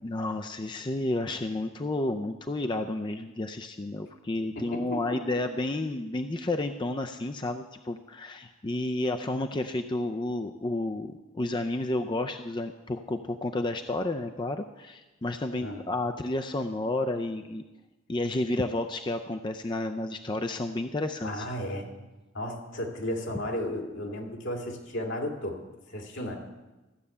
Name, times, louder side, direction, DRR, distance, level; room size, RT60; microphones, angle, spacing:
voice 1, 0.0-17.6 18.1-21.5, left 2 dB, 25° left, 6 dB, 0.5 m, -31 dB
voice 2, 4.6-5.2 15.6-15.8 21.2-21.9 22.3-25.6 25.9-26.4, left 1 dB, 75° left, 1 dB, 2.5 m, -34 dB
14.5 x 6.8 x 8.5 m, 1.1 s
head